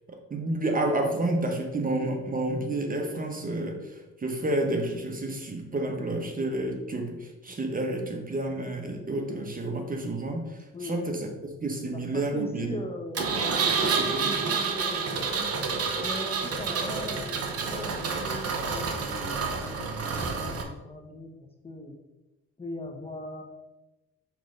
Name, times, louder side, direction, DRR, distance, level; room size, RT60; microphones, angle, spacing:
voice 1, 0.1-11.3 11.6-12.8 13.8-14.6, right 2 dB, 30° right, 3 dB, 1.1 m, -30 dB
voice 2, 10.7-11.1 11.9-15.5 16.0-21.3 21.6-22.0 22.6-23.4, left 1 dB, 20° left, 1 dB, 1.0 m, -40 dB
Engine, 13.2-20.6, right 5 dB, 55° right, 1.0 m, -29 dB
6.0 x 3.4 x 5.3 m, 1.0 s
cardioid pair, 90°, 30 cm